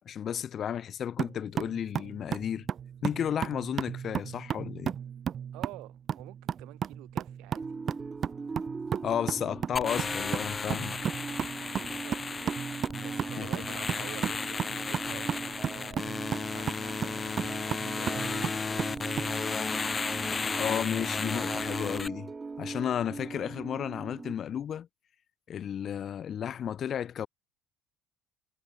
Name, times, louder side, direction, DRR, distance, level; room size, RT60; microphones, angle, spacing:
voice 1, 0.0-2.7 3.0-4.9 9.0-11.1 13.4-13.6 20.6-22.3 22.6-24.9 25.5-27.3, left 9 dB, 45° left, 1.0 m, -33 dB
sound 1, 1.2-19.3, right 8 dB, 40° right, 0.4 m, -35 dB
voice 2, 5.5-7.6 11.3-12.6 13.0-19.5, right 21 dB, 80° right, 3.0 m, -49 dB
sound 2, 7.5-24.3, right 4 dB, 20° right, 2.3 m, -41 dB
sound 3, 9.8-22.1, left 4 dB, 20° left, 0.6 m, -34 dB
cardioid pair, 135°, 0 cm